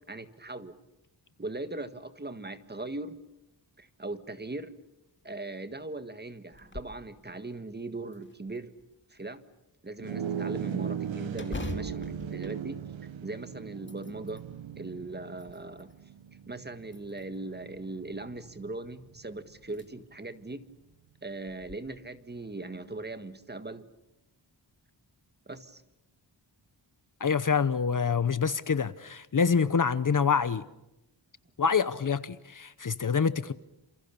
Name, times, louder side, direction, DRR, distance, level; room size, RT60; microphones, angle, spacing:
voice 1, 0.1-0.8 1.4-3.2 3.8-4.7 5.2-8.7 9.1-9.4 9.8-12.8 13.2-14.4 14.8-15.9 16.5-20.6 21.2-23.9 25.5-25.8, right 2 dB, 20° right, 1.6 m, -39 dB
sound 1, 6.5-7.0 7.5-7.6 8.1-8.9 11.3-13.3 13.7-14.5 15.1-16.0 16.9-17.5 19.0-19.1 19.6-19.9 20.3-20.4 21.5-21.7, left 2 dB, 25° left, 2.3 m, -42 dB
sound 2, 10.0-19.6, right 8 dB, 85° right, 1.0 m, -38 dB
voice 2, 27.2-30.6 31.6-33.5, left 6 dB, 45° left, 0.9 m, -26 dB
28.5 x 27.5 x 6.9 m
wide cardioid pair, 135°, 45 cm